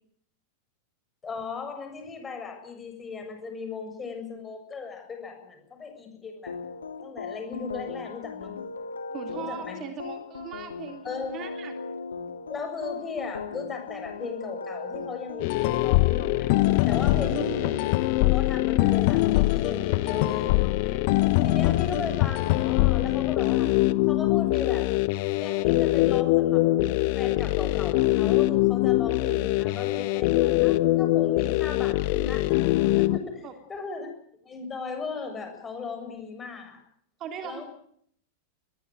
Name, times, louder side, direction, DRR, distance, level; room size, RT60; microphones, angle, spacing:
voice 1, 1.2-6.5 7.0-8.5 9.3-9.8 11.0-11.4 12.5-16.5 16.9-17.9 18.2-21.0 21.4-23.7 24.1-24.9 25.3-26.6 27.2-32.5 33.0-34.1 34.4-36.8 37.4-37.6, left 4 dB, 20° left, 5 dB, 7.3 m, -37 dB
sound 1, 6.5-17.8, left 4 dB, 70° left, 2.4 m, -38 dB
voice 2, 9.1-11.7 17.1-17.7 21.9-22.2 33.4-33.5 37.2-37.6, right 7 dB, 35° right, 7 dB, 3.3 m, -38 dB
sound 2, 15.4-33.2, left 18 dB, 45° left, 1.2 m, -23 dB
22.0 x 20.0 x 9.4 m, 0.66 s
figure-of-eight pair, 90°, 0 cm